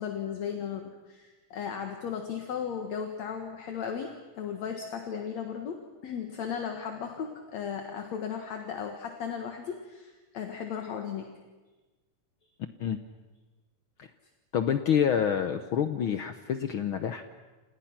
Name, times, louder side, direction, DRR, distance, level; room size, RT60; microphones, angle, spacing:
voice 1, 0.0-11.3, left 7 dB, 60° left, 4 dB, 2.7 m, -36 dB
voice 2, 14.5-17.2, left 8 dB, 85° left, 8 dB, 1.1 m, -27 dB
29.0 x 29.0 x 6.0 m, 1.2 s
omnidirectional pair, 3.7 m